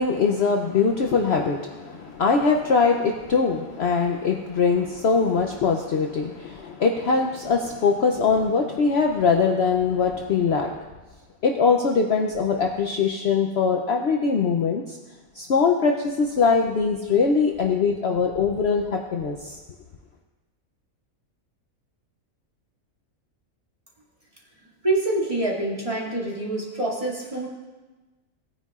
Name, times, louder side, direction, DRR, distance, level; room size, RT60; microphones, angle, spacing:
voice 1, 0.0-10.9 11.4-15.0 15.3-19.6, left 5 dB, 60° left, 2 dB, 0.8 m, -22 dB
voice 2, 24.8-27.5, right 2 dB, 25° right, -4 dB, 2.3 m, -26 dB
18.0 x 9.5 x 2.4 m, 1.2 s
omnidirectional pair, 1.5 m